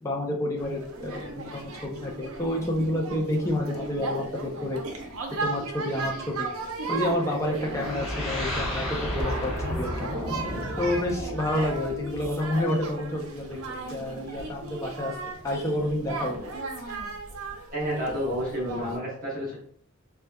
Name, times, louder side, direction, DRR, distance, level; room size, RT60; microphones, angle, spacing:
voice 1, 0.0-4.3 4.6-4.8 5.4-6.5 6.9-8.8 9.1-9.9 10.8-15.1 15.4-16.4, left 1 dB, 15° left, -1 dB, 0.5 m, -29 dB
sound 1, 0.6-19.0, right 3 dB, 85° right, 0.6 m, -36 dB
sound 2, 7.6-12.5, left 1 dB, 5° right, 1.1 m, -33 dB
voice 2, 17.7-19.5, equal, 40° right, -6 dB, 1.0 m, -30 dB
3.9 x 2.3 x 2.2 m, 0.62 s
head